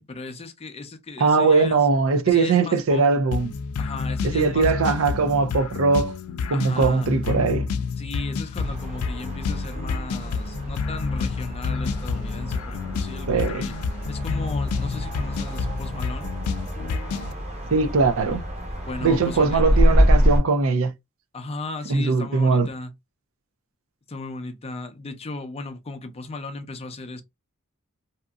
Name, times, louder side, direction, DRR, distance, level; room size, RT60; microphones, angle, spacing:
voice 1, 0.0-1.9 2.3-3.1 3.8-5.0 6.5-7.2 8.0-13.7 14.1-16.3 18.9-19.6 21.3-22.9 24.1-27.2, left 3 dB, 30° left, 0.5 m, -36 dB
voice 2, 1.2-3.5 4.3-6.2 6.5-7.7 13.3-13.6 17.7-18.4 19.0-20.9 21.9-22.7, right 4 dB, 65° right, 0.5 m, -20 dB
sound 1, 3.3-17.3, left 5 dB, 85° left, 0.4 m, -29 dB
sound 2, 8.6-20.4, equal, 30° right, 1.1 m, -26 dB
2.8 x 2.6 x 2.3 m
head